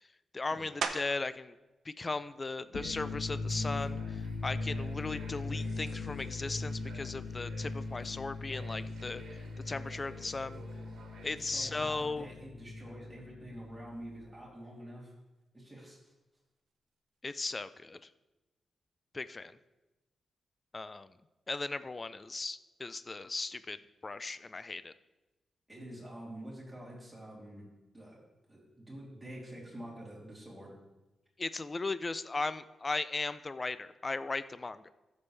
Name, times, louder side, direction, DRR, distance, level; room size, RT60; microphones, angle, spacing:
voice 1, 0.3-1.6 1.9-10.6 11.2-12.3 17.2-18.1 19.1-19.6 20.7-21.1 21.5-23.8 24.0-24.9 31.4-34.9, left 3 dB, 25° left, 14 dB, 0.3 m, -37 dB
sound 1, 0.8-1.4 2.0-6.4 6.9-12.1 12.4-18.0, right 5 dB, 65° right, 0.7 m, -47 dB
sound 2, 2.6-14.2, left 3 dB, 70° left, 1.3 m, -40 dB
sound 3, 2.7-11.7, right 4 dB, 80° right, 1.4 m, -54 dB
voice 2, 11.2-15.1 15.5-16.1 25.7-27.7 27.9-28.2 28.5-30.7, right 1 dB, 10° right, -5 dB, 3.0 m, -47 dB
14.5 x 7.1 x 3.3 m, 1.0 s
wide cardioid pair, 140°, 0 cm